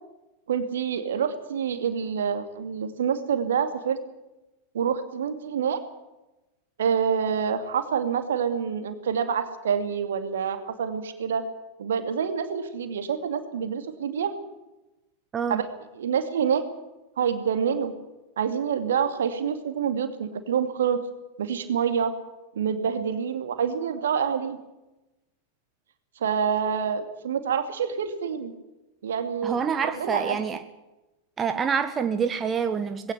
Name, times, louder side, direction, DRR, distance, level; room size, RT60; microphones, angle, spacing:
voice 1, 0.5-4.0 4.7-5.8 6.8-11.4 11.8-14.3 15.5-15.6 16.0-16.6 17.2-17.9 18.4-21.0 21.4-22.1 22.5-24.6 26.2-28.5 29.0-30.4, right 7 dB, 65° right, 8 dB, 2.5 m, -27 dB
voice 2, 29.4-30.6 31.4-33.1, right 6 dB, 20° right, 9 dB, 1.3 m, -26 dB
20.0 x 17.5 x 8.2 m, 0.99 s
figure-of-eight pair, 90°, 0 cm